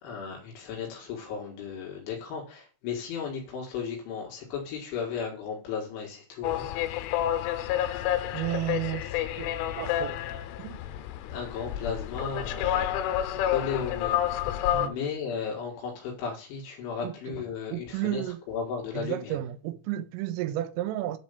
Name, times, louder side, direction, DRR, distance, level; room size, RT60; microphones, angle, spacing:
voice 1, 0.0-6.7 11.3-14.5 14.8-19.4, left 6 dB, 75° left, 4.1 m, -35 dB
sound 1, 6.4-14.9, left 11 dB, 90° left, 3.2 m, -29 dB
voice 2, 8.3-9.1 9.4-10.2 10.6-10.8 14.7-15.0 17.0-17.1 17.7-18.4 18.9-21.2, right 13 dB, 85° right, 3.4 m, -32 dB
10.0 x 4.5 x 6.8 m
omnidirectional pair, 5.7 m